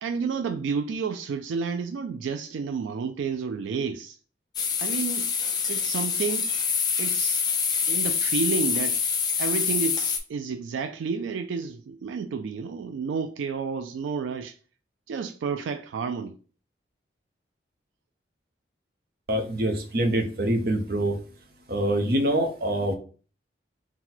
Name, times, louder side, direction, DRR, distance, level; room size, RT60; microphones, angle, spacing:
voice 1, 0.0-4.2 4.8-5.3 5.7-6.5 7.0-7.4 7.9-9.0 9.4-14.6 15.1-16.4, right 5 dB, 85° right, 0.3 m, -30 dB
sound 1, 4.5-10.2, left 6 dB, 20° left, 0.4 m, -26 dB
voice 2, 19.3-21.2 21.7-23.0, right 1 dB, 55° right, 0.7 m, -25 dB
4.0 x 2.1 x 4.3 m
head